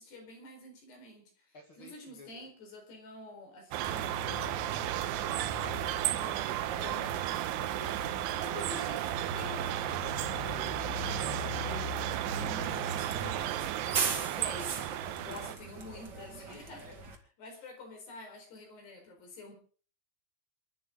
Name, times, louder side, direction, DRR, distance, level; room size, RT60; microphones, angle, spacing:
voice 1, 0.0-5.1 6.8-7.2 8.3-9.0 9.3-9.7 12.6-13.7 14.4-14.9 15.1-16.8 17.4-19.5, left 2 dB, 60° left, 3 dB, 6.2 m, -48 dB
voice 2, 1.5-2.5 5.5-8.8 9.7-11.9 12.3-15.4 16.7-17.0 17.5-17.7, left 3 dB, 90° left, 3 dB, 1.1 m, -54 dB
sound 1, 3.7-15.6, right 14 dB, 80° right, 3.2 m, -34 dB
Bus, 3.8-17.1, right 2 dB, 65° right, 1.0 m, -40 dB
27.5 x 11.5 x 3.8 m, 0.41 s
omnidirectional pair, 5.6 m